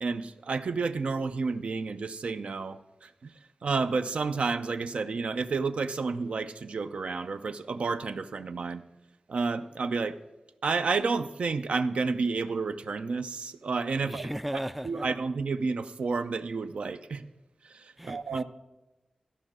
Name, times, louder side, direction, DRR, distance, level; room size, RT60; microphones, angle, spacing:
voice 1, 0.0-3.3 3.6-8.8 9.3-10.2 10.6-14.3 14.8-17.3 17.6-18.4, right 4 dB, 70° right, 0.5 m, -30 dB
voice 2, 14.0-15.1 18.0-18.4, equal, 5° right, 0.3 m, -36 dB
14.0 x 5.4 x 6.0 m
wide cardioid pair, 70°, 2 cm